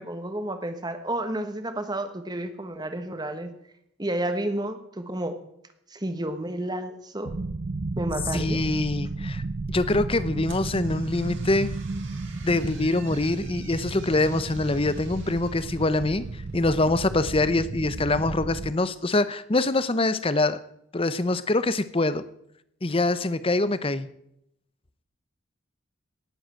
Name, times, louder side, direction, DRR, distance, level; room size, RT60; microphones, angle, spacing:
voice 1, 0.0-3.5 4.0-5.4 5.9-7.3 8.0-8.6, right 1 dB, 20° right, 8 dB, 1.3 m, -31 dB
sound 1, 7.2-18.7, right 3 dB, 40° right, 0.4 m, -33 dB
voice 2, 8.3-9.4 9.7-11.7 12.4-16.2 16.5-20.6 20.9-22.2 22.8-24.1, left 2 dB, 25° left, 15 dB, 0.7 m, -24 dB
sound 2, 10.4-16.6, right 6 dB, 55° right, 2.9 m, -50 dB
18.5 x 7.8 x 7.7 m, 0.77 s
head